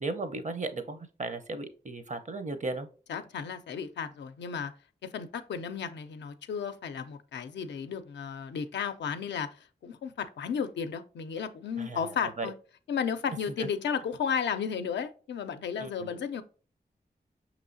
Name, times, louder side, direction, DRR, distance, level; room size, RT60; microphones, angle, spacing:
voice 1, 0.0-2.9 11.8-12.5 13.6-13.7 15.8-16.2, right 3 dB, 45° right, 0.6 m, -36 dB
voice 2, 3.1-4.7 5.0-9.5 9.8-12.5 12.9-16.4, left 7 dB, 90° left, 0.4 m, -33 dB
5.4 x 3.0 x 2.6 m
cardioid pair, 40°, 18 cm